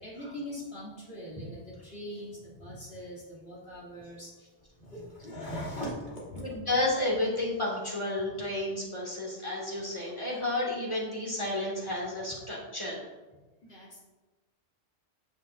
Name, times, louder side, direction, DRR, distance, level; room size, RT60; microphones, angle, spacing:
voice 1, 0.0-4.3 4.8-6.6 13.6-14.0, equal, 60° left, -7 dB, 3.2 m, -41 dB
voice 2, 6.4-13.1, left 1 dB, 25° left, -5 dB, 2.4 m, -31 dB
9.5 x 7.2 x 2.7 m, 1.2 s
omnidirectional pair, 1.2 m